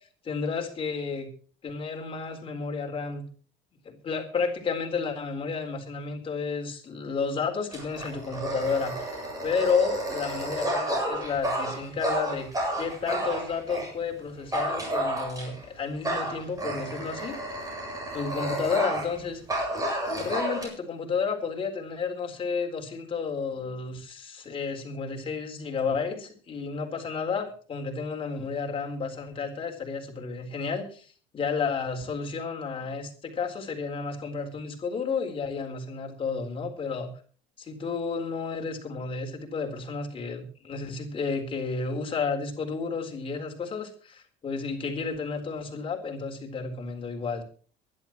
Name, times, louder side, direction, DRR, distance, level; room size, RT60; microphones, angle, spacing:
voice 1, 0.2-1.3 1.6-3.2 3.8-12.5 12.8-17.4 18.1-19.4 20.1-37.1 37.6-47.4, left 5 dB, 25° left, 2 dB, 4.1 m, -31 dB
Dog, 7.7-13.9 14.5-15.6 16.0-19.2 19.5-20.7, right 1 dB, 20° right, 8.0 m, -31 dB
23.0 x 12.0 x 3.1 m, 0.41 s
cardioid pair, 150°, 20 cm